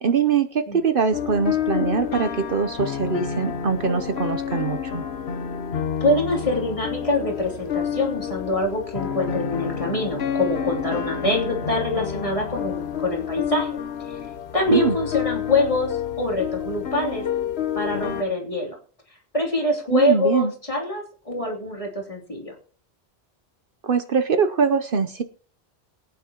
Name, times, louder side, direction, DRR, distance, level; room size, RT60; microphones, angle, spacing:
voice 1, 0.0-5.0 14.7-15.0 19.9-20.5 23.8-25.2, right 6 dB, 60° right, 9 dB, 1.0 m, -22 dB
sound 1, 1.1-18.2, left 8 dB, 75° left, 1.2 m, -29 dB
voice 2, 6.0-13.7 14.1-14.2 14.5-17.2 17.7-18.8 19.3-22.5, left 1 dB, 30° left, 0 dB, 3.1 m, -25 dB
22.0 x 9.3 x 2.9 m, 0.42 s
omnidirectional pair, 1.1 m